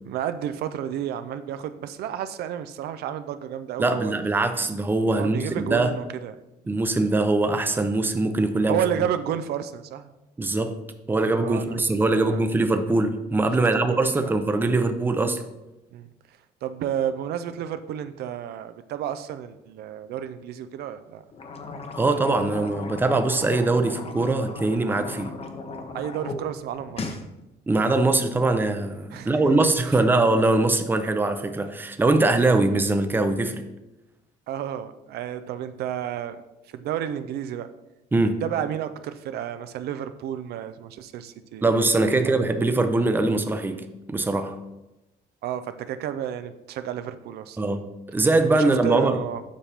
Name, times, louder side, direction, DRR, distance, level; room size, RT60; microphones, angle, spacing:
voice 1, 0.1-4.1 5.2-6.3 8.7-10.1 11.4-11.8 12.2-12.4 13.9-14.3 15.9-16.1 16.6-21.2 25.9-27.2 29.1-29.7 34.5-36.4 36.7-37.7 38.4-41.7 42.1-42.3 45.4-47.6 48.5-49.4, right 10 dB, 70° right, 11 dB, 0.5 m, -31 dB
voice 2, 3.8-5.9 6.7-8.8 10.4-10.7 11.1-15.4 22.0-25.4 27.7-33.6 38.1-38.4 41.6-44.6 47.6-49.2, right 2 dB, 10° right, 8 dB, 0.6 m, -22 dB
sound 1, 21.3-26.4 26.7-27.2, left 3 dB, 35° left, 0.8 m, -36 dB
7.3 x 5.7 x 3.4 m, 0.97 s
cardioid pair, 110°, 17 cm